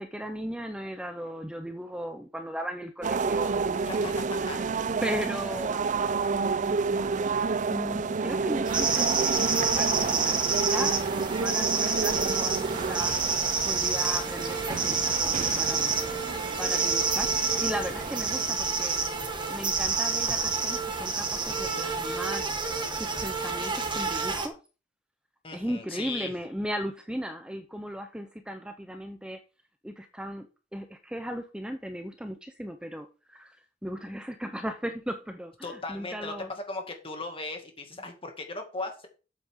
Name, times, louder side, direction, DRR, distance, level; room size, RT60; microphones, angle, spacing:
voice 1, 0.0-4.0 4.4-4.7 5.0-7.3 7.7-13.1 13.6-16.0 16.6-22.5 22.9-24.6 25.5-29.4 29.8-30.5 30.7-36.5, equal, 5° right, 6 dB, 0.7 m, -37 dB
sound 1, 3.0-18.5, right 4 dB, 45° right, 0.5 m, -30 dB
voice 2, 3.8-4.6 25.4-26.3 35.6-39.1, left 3 dB, 30° left, 4 dB, 2.2 m, -37 dB
sound 2, 8.7-24.5, right 4 dB, 25° right, 1.6 m, -28 dB
8.4 x 7.9 x 3.7 m, 0.33 s
head